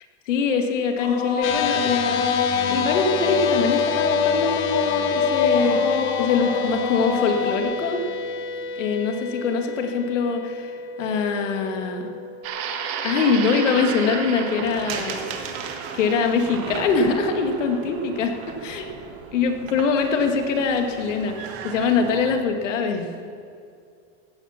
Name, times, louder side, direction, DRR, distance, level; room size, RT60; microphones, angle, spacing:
voice 1, 0.3-8.1 8.8-12.1 13.0-15.6 15.9-18.9 19.3-23.1, left 5 dB, 85° left, 4 dB, 2.2 m, -24 dB
sound 1, 1.0-7.6, left 6 dB, 60° left, 2.2 m, -24 dB
sound 2, 1.4-13.9, left 4 dB, 35° left, 1.2 m, -31 dB
sound 3, 12.4-22.4, right 6 dB, 40° right, 1.6 m, -33 dB
16.5 x 14.0 x 5.8 m, 2.4 s
supercardioid pair, 155°, 36 cm